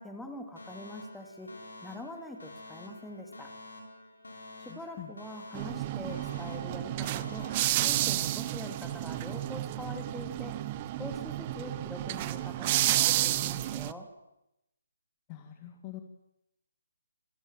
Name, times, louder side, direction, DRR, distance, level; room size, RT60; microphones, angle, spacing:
voice 1, 0.0-1.6 1.8-3.5 4.6-10.6 11.0-14.1, left 1 dB, ahead, 3 dB, 2.9 m, -44 dB
Alarm, 0.6-8.6, left 2 dB, 70° left, 6.8 m, -49 dB
voice 2, 4.7-5.1 15.3-16.0, left 14 dB, 25° left, 5 dB, 2.1 m, -45 dB
sound 1, 5.5-13.9, right 15 dB, 25° right, 0.8 m, -31 dB
27.0 x 15.5 x 9.2 m, 0.86 s
figure-of-eight pair, 140°, 0 cm